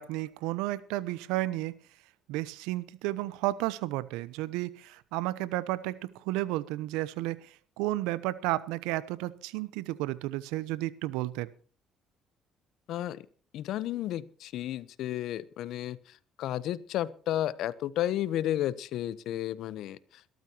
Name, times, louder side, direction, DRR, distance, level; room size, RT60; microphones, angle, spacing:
voice 1, 0.0-1.7 2.3-7.5 7.8-11.5, right 17 dB, 85° right, 18 dB, 0.8 m, -32 dB
voice 2, 12.9-13.3 13.5-16.0 16.4-20.0, left 12 dB, 70° left, 18 dB, 0.9 m, -32 dB
22.0 x 13.5 x 3.0 m, 0.42 s
supercardioid pair, 70°, 0 cm